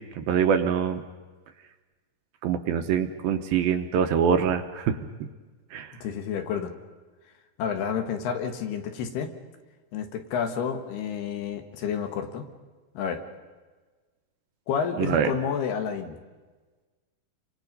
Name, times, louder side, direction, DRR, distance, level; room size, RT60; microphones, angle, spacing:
voice 1, 0.2-1.0 2.4-5.0 5.7-5.9 15.0-15.3, right 7 dB, 75° right, 7 dB, 2.4 m, -24 dB
voice 2, 6.0-6.7 7.6-9.3 9.9-12.4 13.0-13.2 14.7-16.2, left 7 dB, 75° left, 6 dB, 3.5 m, -30 dB
29.5 x 24.5 x 5.4 m, 1.3 s
omnidirectional pair, 4.8 m